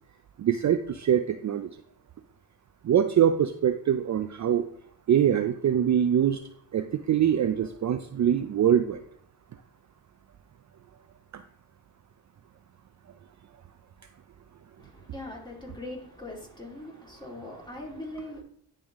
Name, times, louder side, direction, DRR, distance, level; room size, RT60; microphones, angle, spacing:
voice 1, 0.4-1.7 2.8-4.7 5.1-6.4 6.7-9.0, right 9 dB, 45° right, 9 dB, 0.4 m, -23 dB
voice 2, 14.8-18.4, left 1 dB, 10° left, -1 dB, 2.2 m, -41 dB
10.0 x 3.4 x 3.5 m, 0.63 s
cardioid pair, 65°, 44 cm